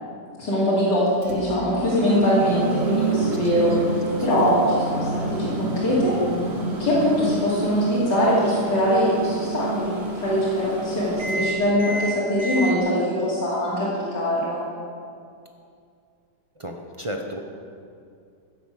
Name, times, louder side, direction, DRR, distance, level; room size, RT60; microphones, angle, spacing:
voice 1, 0.4-3.7 4.2-6.1 6.8-14.6, equal, 70° left, -10 dB, 3.5 m, -22 dB
sound 1, 1.2-7.4, right 1 dB, 25° right, 2.9 m, -31 dB
Microwave oven, 1.2-12.7, right 4 dB, 90° right, 2.4 m, -30 dB
voice 2, 16.6-17.4, equal, 40° right, 2 dB, 0.4 m, -33 dB
15.5 x 8.5 x 6.5 m, 2.4 s
omnidirectional pair, 2.0 m